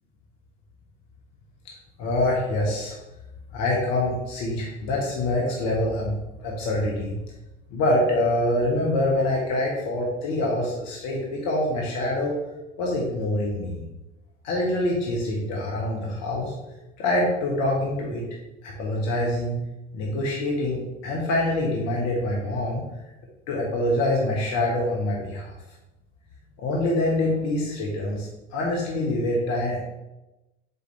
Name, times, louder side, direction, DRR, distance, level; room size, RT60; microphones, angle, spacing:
voice 1, 2.0-3.0 3.5-7.1 7.7-12.4 12.8-13.8 14.4-16.5 17.0-18.3 18.6-19.6 19.9-22.8 23.5-25.5 26.6-29.8, left 1 dB, 50° left, -2 dB, 1.5 m, -25 dB
6.8 x 4.9 x 3.3 m, 0.99 s
figure-of-eight pair, 70°, 36 cm